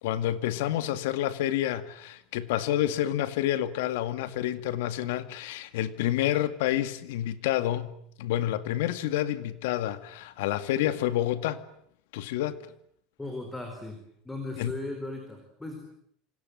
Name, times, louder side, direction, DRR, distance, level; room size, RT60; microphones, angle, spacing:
voice 1, 0.0-11.6 12.1-12.6 14.6-14.7, left 12 dB, 85° left, 2.2 m, -29 dB
voice 2, 13.2-14.0 14.2-15.8, left 2 dB, 5° left, 4.2 m, -37 dB
28.0 x 26.0 x 8.0 m
cardioid pair, 165°, 0 cm